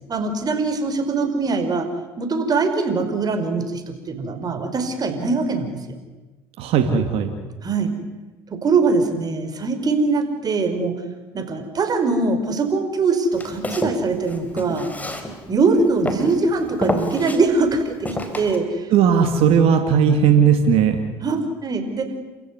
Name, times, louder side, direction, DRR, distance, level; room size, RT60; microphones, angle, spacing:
voice 1, 0.1-1.9 2.2-5.8 7.6-7.9 8.5-10.9 11.3-14.9 15.5-18.9 21.2-22.1, right 3 dB, 40° right, 7 dB, 5.0 m, -22 dB
voice 2, 6.6-7.3 18.9-21.0, right 7 dB, 65° right, 6 dB, 2.4 m, -17 dB
Walk footsteps, 13.3-15.7 16.1-16.4 16.8-17.4 18.0-18.6, left 1 dB, 15° left, 4.3 m, -27 dB
28.5 x 15.5 x 9.7 m, 1.2 s
supercardioid pair, 75°, 10 cm